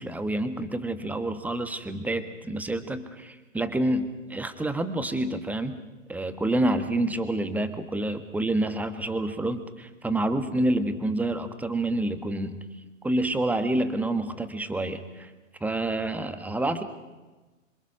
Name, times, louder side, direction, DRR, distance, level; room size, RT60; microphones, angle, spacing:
voice 1, 0.0-5.8 6.1-12.6 13.0-15.3 15.6-16.8, right 1 dB, 5° right, 10 dB, 1.5 m, -28 dB
26.5 x 26.5 x 6.1 m, 1.2 s
figure-of-eight pair, 110°, 39 cm